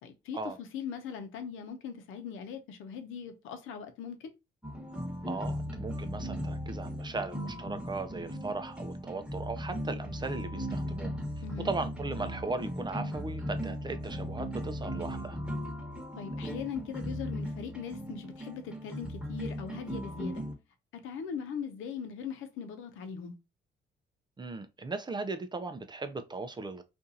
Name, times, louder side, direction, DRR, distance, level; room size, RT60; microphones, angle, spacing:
voice 1, 0.0-4.3 11.4-11.7 16.2-20.4 20.9-23.4, left 7 dB, 85° left, 0.8 m, -40 dB
sound 1, 4.6-20.5, equal, 5° right, 1.2 m, -37 dB
voice 2, 5.3-11.1 11.6-15.4 24.4-26.8, right 3 dB, 20° right, 0.5 m, -37 dB
2.7 x 2.5 x 3.8 m
cardioid pair, 90°, 20 cm